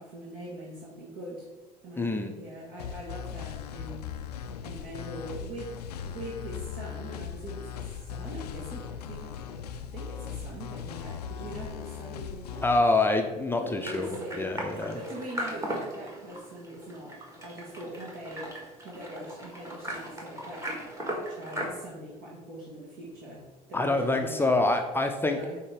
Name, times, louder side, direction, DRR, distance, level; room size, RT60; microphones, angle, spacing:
voice 1, 0.0-1.5 1.8-5.8 6.0-12.6 13.6-20.7 21.1-24.6 25.3-25.6, right 1 dB, 50° right, -6 dB, 1.7 m, -42 dB
voice 2, 2.0-2.3 12.6-14.1 14.4-15.0 23.7-25.4, left 2 dB, 10° left, 4 dB, 0.7 m, -26 dB
sound 1, 2.8-12.8, left 8 dB, 75° left, 0.4 m, -39 dB
sound 2, 13.8-21.7, equal, 15° right, 1.8 m, -38 dB
8.4 x 2.9 x 4.9 m, 1.2 s
figure-of-eight pair, 60°, 21 cm